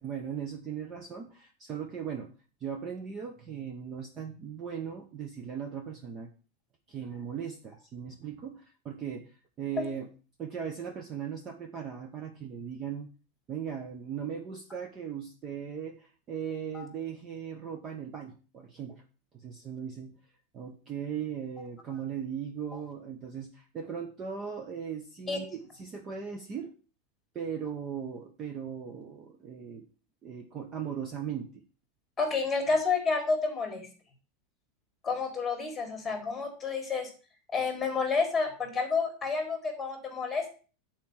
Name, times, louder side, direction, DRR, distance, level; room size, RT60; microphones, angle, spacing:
voice 1, 0.0-2.3 2.6-6.3 6.9-10.1 10.4-13.1 13.5-19.0 19.3-20.1 20.5-26.7 27.3-29.9 30.2-31.5, right 7 dB, 20° right, 4 dB, 0.7 m, -38 dB
voice 2, 32.2-33.9 35.0-37.1 37.5-40.5, left 4 dB, 10° left, 5 dB, 1.8 m, -30 dB
8.0 x 4.4 x 7.2 m, 0.36 s
supercardioid pair, 170°, 0 cm